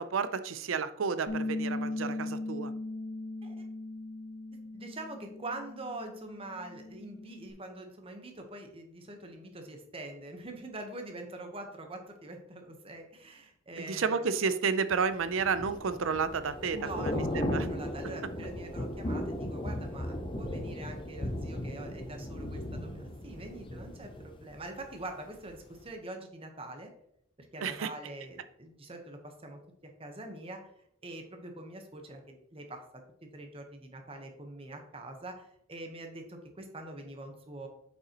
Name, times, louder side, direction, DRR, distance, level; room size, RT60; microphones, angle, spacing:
voice 1, 0.0-2.7 13.8-16.8 17.0-17.7 27.6-27.9, right 5 dB, 75° right, 12 dB, 0.5 m, -31 dB
Bass guitar, 1.3-7.5, left 2 dB, 65° left, 1.0 m, -38 dB
voice 2, 4.7-14.3 16.7-26.9 27.5-30.6 31.0-32.8 33.2-37.7, right 2 dB, 30° right, 4 dB, 1.0 m, -44 dB
Thunder / Rain, 15.1-25.1 25.4-25.7, left 1 dB, 25° left, 0.6 m, -36 dB
7.9 x 5.5 x 2.9 m, 0.73 s
head